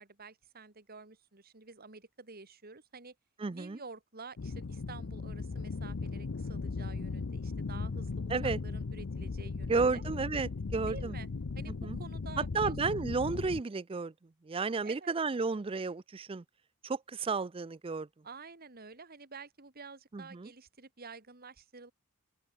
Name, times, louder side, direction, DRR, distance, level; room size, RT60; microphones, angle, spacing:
voice 1, 0.0-3.1 3.5-10.0 10.8-11.3 11.6-12.7 14.8-15.1 18.2-21.9, right 4 dB, 45° right, 2.3 m, -50 dB
voice 2, 3.4-3.8 8.3-8.6 9.7-11.1 11.8-12.0 12.4-14.1 14.4-16.4 16.8-18.1 20.1-20.5, right 4 dB, 25° right, 0.4 m, -32 dB
sound 1, 4.4-13.6, left 4 dB, 65° left, 0.6 m, -37 dB
open air
head